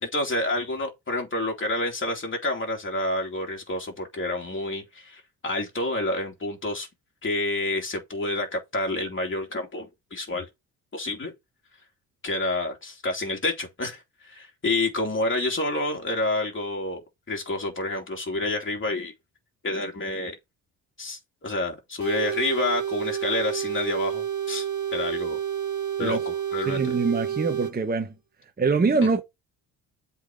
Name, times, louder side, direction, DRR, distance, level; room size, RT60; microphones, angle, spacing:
voice 1, 0.0-6.9 7.2-10.5 10.9-11.3 12.2-19.1 19.6-20.3 21.0-25.4 26.0-26.9, left 2 dB, 30° left, 2.8 m, -29 dB
sound 1, 22.0-27.7, right 9 dB, 45° right, 1.6 m, -29 dB
voice 2, 26.6-28.1 28.6-29.2, right 4 dB, 20° right, 1.1 m, -24 dB
7.9 x 4.3 x 5.0 m
supercardioid pair, 60°, 41 cm